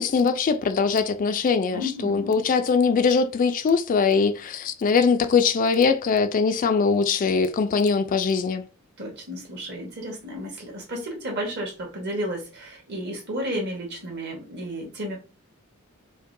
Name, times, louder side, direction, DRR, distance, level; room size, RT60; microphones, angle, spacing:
voice 1, 0.0-8.7, left 5 dB, 40° left, 0.3 m, -22 dB
voice 2, 1.7-2.4 9.0-15.2, equal, 50° right, 1.3 m, -32 dB
5.1 x 2.1 x 2.6 m
head